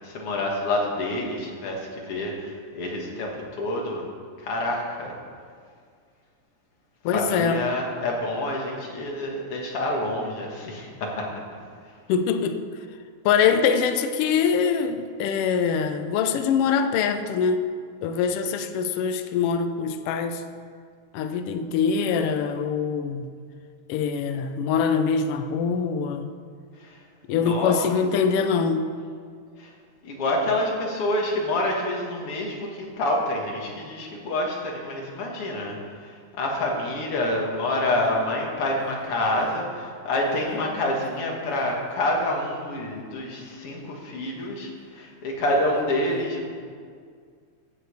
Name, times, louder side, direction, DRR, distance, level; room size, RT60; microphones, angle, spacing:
voice 1, 0.0-4.1 4.4-5.1 7.1-11.3 26.8-27.0 27.4-27.9 29.6-29.7 30.0-46.5, left 1 dB, 55° left, -1 dB, 2.5 m, -27 dB
voice 2, 7.0-7.6 12.1-12.6 13.2-17.6 18.0-20.4 21.1-23.3 23.9-26.3 27.3-28.9 42.8-43.4 44.4-44.6 46.0-46.2, left 6 dB, 90° left, 8 dB, 1.3 m, -24 dB
9.3 x 7.7 x 8.1 m, 2.1 s
omnidirectional pair, 3.4 m